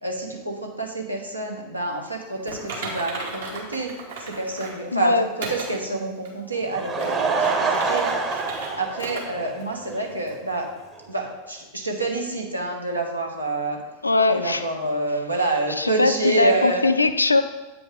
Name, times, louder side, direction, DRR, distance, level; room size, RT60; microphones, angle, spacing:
voice 1, 0.0-3.9 4.2-5.1 5.5-8.4 8.8-10.7 11.0-13.8 14.3-16.8, right 2 dB, 85° right, 1 dB, 1.1 m, -27 dB
Typing, 2.5-4.8 5.4-5.7 6.2-6.3 6.9-8.7 9.0-9.2 9.6-9.7 10.3-10.4, right 3 dB, 65° right, 1.6 m, -35 dB
voice 2, 4.9-5.3 14.0-14.7 15.8-17.4, left 2 dB, 80° left, 9 dB, 0.4 m, -20 dB
Laughter / Crowd, 6.5-10.0 10.3-10.4 11.0-11.1 11.2-11.3, right 4 dB, 25° right, 0.9 m, -26 dB
8.4 x 5.1 x 3.6 m, 1.2 s
figure-of-eight pair, 90°, 0 cm